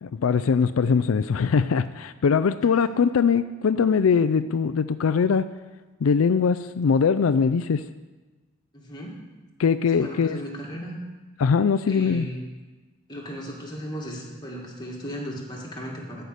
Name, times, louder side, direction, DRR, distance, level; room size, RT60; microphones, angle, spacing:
voice 1, 0.0-5.5 6.0-7.8 9.6-10.4 11.4-12.3, left 6 dB, 80° left, 12 dB, 0.4 m, -21 dB
voice 2, 8.7-9.2 9.9-11.0 11.9-12.4 13.1-16.2, equal, 20° left, -2 dB, 2.2 m, -36 dB
13.5 x 5.7 x 7.9 m, 1.3 s
head